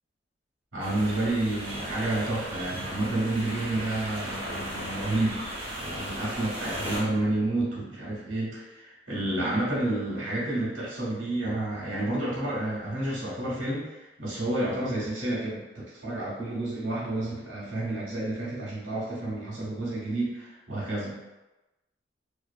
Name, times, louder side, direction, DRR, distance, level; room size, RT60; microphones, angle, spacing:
voice 1, 0.7-21.2, right 2 dB, 80° right, -6 dB, 0.8 m, -30 dB
sound 1, 0.8-7.0, equal, 25° right, 0.7 m, -36 dB
2.5 x 2.3 x 2.3 m, 1.1 s
head